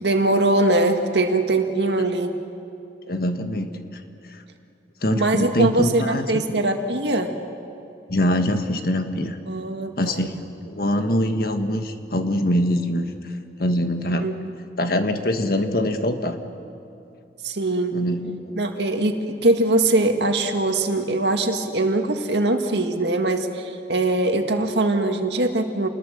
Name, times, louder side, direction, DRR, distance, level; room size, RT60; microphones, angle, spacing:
voice 1, 0.0-2.3 5.2-7.3 9.5-10.3 14.2-14.3 17.4-18.0 18.6-25.9, right 2 dB, 75° right, 5 dB, 1.9 m, -22 dB
voice 2, 3.1-4.0 4.3-4.4 5.0-6.2 8.1-9.4 10.0-13.3 13.6-14.3 14.8-16.4 17.9-18.6, left 1 dB, 55° left, 7 dB, 1.6 m, -23 dB
28.5 x 20.5 x 6.8 m, 2.6 s
head